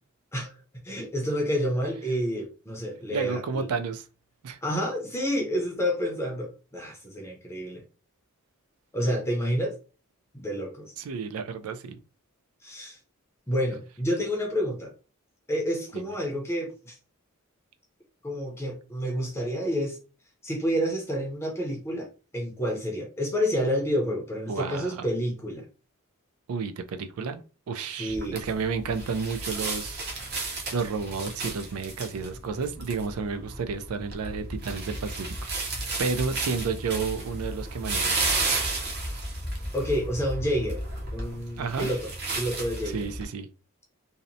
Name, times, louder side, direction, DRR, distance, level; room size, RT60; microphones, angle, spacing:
voice 1, 0.8-3.6 4.6-7.8 8.9-9.8 10.3-10.9 12.6-13.0 13.5-14.9 15.5-17.0 18.2-20.0 20.4-25.6 28.0-28.4 39.7-40.8 41.1-42.1 42.4-43.1, equal, 10° left, 0.5 m, -29 dB
voice 2, 3.1-4.0 4.4-4.6 11.0-12.0 15.9-16.1 24.5-25.1 26.5-27.4 27.7-38.1 41.6-41.9 42.9-43.5, right 5 dB, 80° right, 0.4 m, -31 dB
sound 1, 28.1-43.2, right 2 dB, 50° right, 0.7 m, -33 dB
2.7 x 2.0 x 2.6 m
head